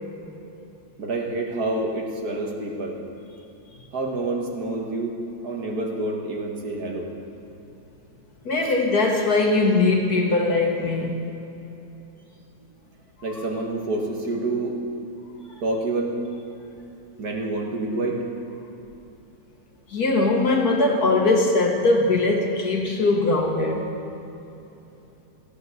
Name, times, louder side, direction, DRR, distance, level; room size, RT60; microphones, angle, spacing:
voice 1, 1.0-2.9 3.9-5.2 5.4-7.1 8.6-8.7 13.2-14.8 15.6-16.2 17.2-18.2, right 2 dB, 50° right, 0 dB, 1.6 m, -27 dB
voice 2, 8.4-11.2 19.9-23.9, left 2 dB, 55° left, 1 dB, 1.5 m, -21 dB
15.5 x 8.5 x 6.4 m, 3.0 s
omnidirectional pair, 2.3 m